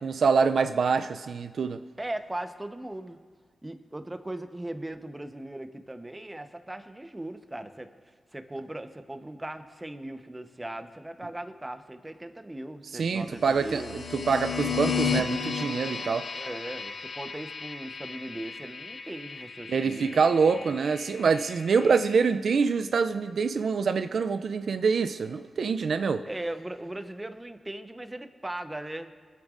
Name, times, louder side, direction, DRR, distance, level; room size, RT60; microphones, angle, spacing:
voice 1, 0.0-1.8 12.9-16.3 19.7-26.2, right 5 dB, 75° right, 10 dB, 0.4 m, -25 dB
voice 2, 2.0-3.2 3.6-7.9 8.3-14.0 16.3-20.2 20.5-20.8 26.3-29.1, right 1 dB, 20° right, 8 dB, 0.9 m, -38 dB
sound 1, 13.4-22.2, left 5 dB, 60° left, 1.1 m, -34 dB
24.5 x 9.0 x 2.5 m, 1.5 s
cardioid pair, 60°, 0 cm